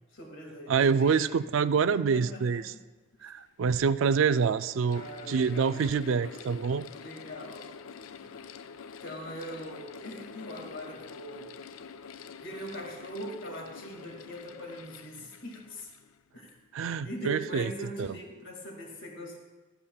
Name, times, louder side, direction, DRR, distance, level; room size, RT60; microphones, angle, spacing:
voice 1, 0.0-1.4 1.9-2.8 4.9-5.9 7.0-7.7 8.1-8.5 9.0-11.5 12.4-15.9 16.3-16.6 17.0-19.4, equal, 65° left, 1 dB, 2.1 m, -41 dB
voice 2, 0.7-2.6 3.2-6.9 16.7-17.7 18.0-18.1, right 6 dB, 75° right, 14 dB, 0.4 m, -26 dB
Mechanical fan, 3.1-3.2 4.0-16.7, left 6 dB, 85° left, 0.4 m, -47 dB
14.0 x 13.5 x 2.3 m, 1.2 s
head